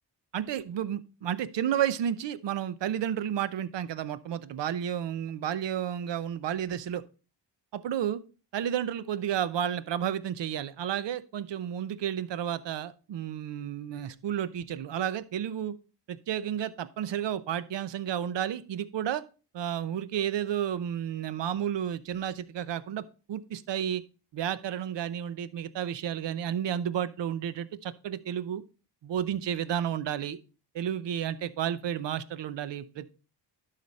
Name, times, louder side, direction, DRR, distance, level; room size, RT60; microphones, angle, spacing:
voice 1, 0.3-7.0 7.7-8.2 8.5-15.8 16.1-19.2 19.5-23.0 23.3-24.0 24.3-28.6 29.0-30.4 30.7-33.1, right 10 dB, 70° right, 14 dB, 0.8 m, -31 dB
11.5 x 5.1 x 4.1 m, 0.35 s
cardioid pair, 85°, 44 cm